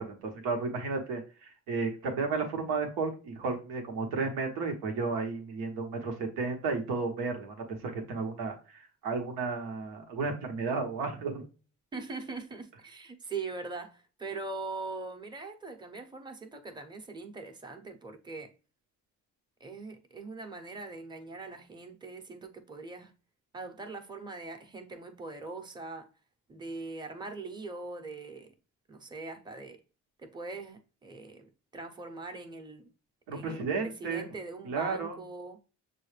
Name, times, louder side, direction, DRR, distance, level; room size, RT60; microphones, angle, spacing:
voice 1, 0.0-11.4 33.3-34.3 34.6-35.1, right 4 dB, 85° right, 1.0 m, -33 dB
voice 2, 11.9-18.5 19.6-23.1 23.5-26.1 26.5-28.5 28.9-29.8 30.2-32.9 33.3-35.6, right 3 dB, 10° right, 0.8 m, -41 dB
6.2 x 2.2 x 3.2 m
supercardioid pair, 60°, 36 cm